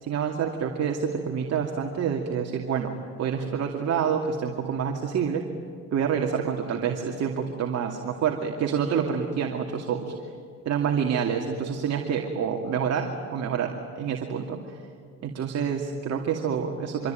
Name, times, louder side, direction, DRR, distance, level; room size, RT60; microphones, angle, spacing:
voice 1, 0.0-2.9 3.2-5.4 5.9-10.1 10.6-13.7 14.0-14.6 15.2-17.1, right 7 dB, 55° right, 2 dB, 2.5 m, -27 dB
26.0 x 25.0 x 9.2 m, 2.2 s
cardioid pair, 105°, 31 cm